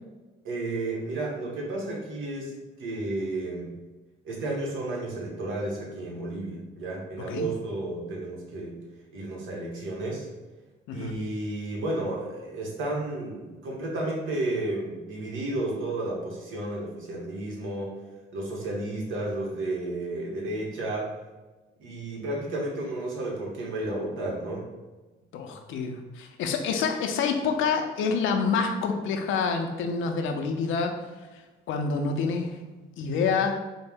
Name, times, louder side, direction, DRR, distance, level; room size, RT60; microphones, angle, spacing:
voice 1, 0.4-2.5 2.8-3.7 4.2-8.8 9.1-10.3 10.9-18.0 18.3-21.1 21.8-24.7, right 2 dB, 80° right, -2 dB, 1.0 m, -32 dB
voice 2, 25.3-31.0 31.7-32.6 33.0-33.5, left 5 dB, 80° left, 5 dB, 0.5 m, -27 dB
4.3 x 2.1 x 3.4 m, 1.2 s
cardioid pair, 90°, 20 cm